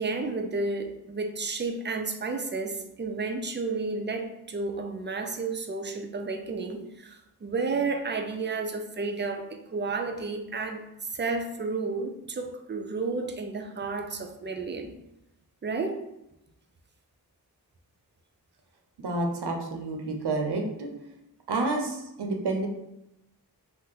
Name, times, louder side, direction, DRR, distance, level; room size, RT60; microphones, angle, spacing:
voice 1, 0.0-15.0 15.6-16.1, right 3 dB, 30° right, 0.4 m, -32 dB
voice 2, 19.0-20.9 21.5-22.7, right 2 dB, 80° right, 0.6 m, -29 dB
2.7 x 2.1 x 3.8 m
wide cardioid pair, 70°, 39 cm